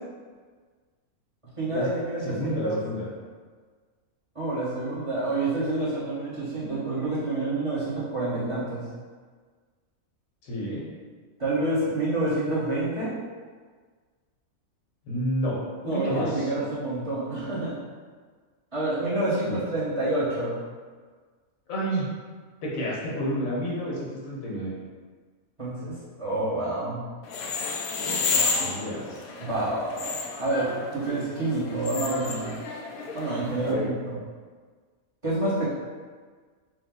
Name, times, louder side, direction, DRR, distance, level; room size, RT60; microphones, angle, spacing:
voice 1, 1.6-2.8 4.3-8.8 11.4-13.1 15.8-17.8 18.7-20.6 25.6-27.1 29.4-32.5 33.1-34.1 35.2-35.7, right 2 dB, 25° right, -11 dB, 1.1 m, -28 dB
voice 2, 2.2-3.1 10.4-10.8 15.1-16.5 19.4-19.6 21.7-22.0 22.6-24.7 28.3-29.2 33.6-33.9, equal, 75° left, -5 dB, 1.4 m, -30 dB
sound 1, 27.2-33.7, left 4 dB, 90° left, 1.0 m, -31 dB
4.7 x 2.2 x 3.7 m, 1.5 s
omnidirectional pair, 1.5 m